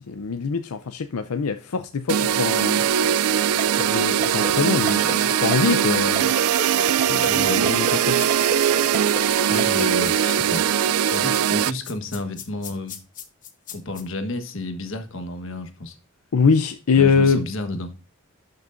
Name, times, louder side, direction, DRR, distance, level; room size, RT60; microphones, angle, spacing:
voice 1, 0.0-2.8 3.8-6.3 7.0-8.2 16.3-17.4, left 5 dB, 85° left, 0.6 m, -23 dB
sound 1, 2.1-11.7, right 9 dB, 85° right, 0.4 m, -21 dB
Ringtone, 3.6-10.3, right 2 dB, 35° right, 1.5 m, -29 dB
voice 2, 7.2-7.7 9.5-10.7 11.1-13.0 13.7-16.0 16.9-17.9, left 2 dB, 60° left, 1.4 m, -31 dB
sound 2, 8.1-14.0, left 9 dB, 35° left, 1.0 m, -39 dB
12.0 x 6.4 x 2.6 m
head